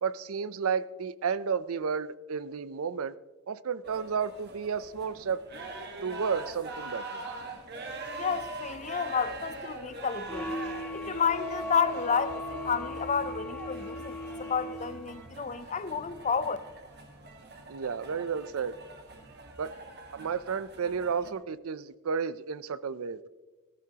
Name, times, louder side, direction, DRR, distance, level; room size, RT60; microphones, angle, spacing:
voice 1, 0.0-3.1 3.5-5.4 6.0-7.2 17.7-18.7 19.6-19.7 20.1-23.3, right 6 dB, 70° right, 0.5 m, -32 dB
sound 1, 3.8-21.3, right 2 dB, 50° right, 1.5 m, -42 dB
voice 2, 8.2-10.5 10.9-16.6, left 6 dB, 30° left, 0.5 m, -31 dB
sound 2, 10.3-15.1, left 1 dB, 5° left, 1.7 m, -38 dB
17.0 x 14.0 x 2.9 m
head